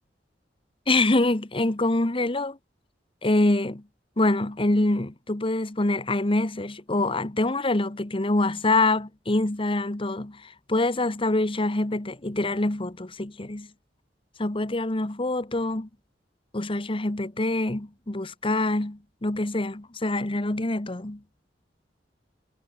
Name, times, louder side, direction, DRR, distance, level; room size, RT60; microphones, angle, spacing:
voice 1, 0.9-2.6 3.2-3.8 4.2-13.7 14.4-15.9 16.5-21.2, left 2 dB, 30° left, 1.3 m, -25 dB
head